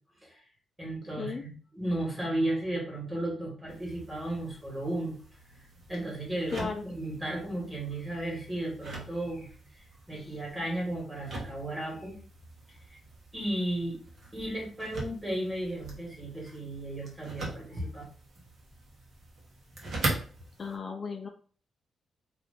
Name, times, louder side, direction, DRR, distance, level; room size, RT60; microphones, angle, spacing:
voice 1, 0.8-5.1 5.9-9.5 10.1-12.2 13.3-14.0 14.3-18.0, right 1 dB, 15° right, -3 dB, 1.6 m, -34 dB
sound 1, 3.7-20.8, right 2 dB, 55° right, 1.1 m, -42 dB
voice 2, 6.5-6.8 10.1-10.4 20.6-21.3, left 5 dB, 40° left, 2 dB, 0.4 m, -36 dB
2.8 x 2.4 x 3.5 m, 0.42 s
cardioid pair, 105°, 0 cm